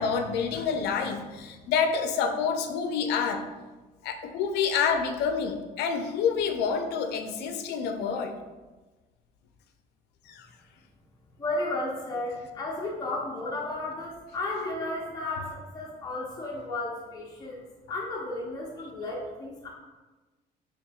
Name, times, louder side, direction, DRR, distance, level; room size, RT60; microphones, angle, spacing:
voice 1, 0.0-3.5 4.0-8.4 10.3-10.5, left 6 dB, 80° left, 6 dB, 0.4 m, -28 dB
voice 2, 11.4-17.6 17.9-19.7, left 2 dB, 20° left, -4 dB, 0.6 m, -33 dB
4.2 x 3.3 x 2.3 m, 1.2 s
cardioid pair, 110°, 17 cm